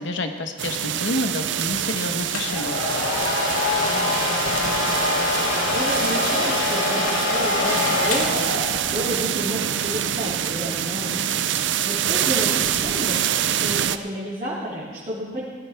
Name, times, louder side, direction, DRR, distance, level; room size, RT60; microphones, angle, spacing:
voice 1, 0.0-2.7, left 2 dB, 60° left, 6 dB, 1.2 m, -28 dB
sound 1, 0.6-14.0, right 10 dB, 55° right, 0.5 m, -26 dB
Domestic sounds home sounds, 2.3-9.0, left 2 dB, 90° left, 2.4 m, -24 dB
voice 2, 3.8-4.2 4.5-8.5 8.9-15.4, equal, 35° right, -9 dB, 2.7 m, -32 dB
18.0 x 14.0 x 3.5 m, 1.5 s
head